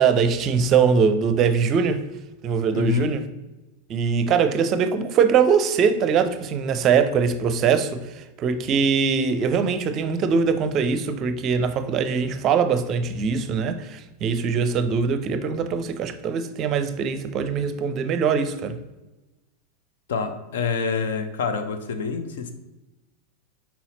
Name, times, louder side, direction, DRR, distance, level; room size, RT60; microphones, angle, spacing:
voice 1, 0.0-2.0 2.4-3.2 3.9-18.8, right 6 dB, 35° right, 0.6 m, -22 dB
voice 2, 2.7-3.1 20.1-22.5, left 6 dB, 60° left, 0.7 m, -26 dB
5.7 x 4.4 x 4.0 m
figure-of-eight pair, 90°, 0 cm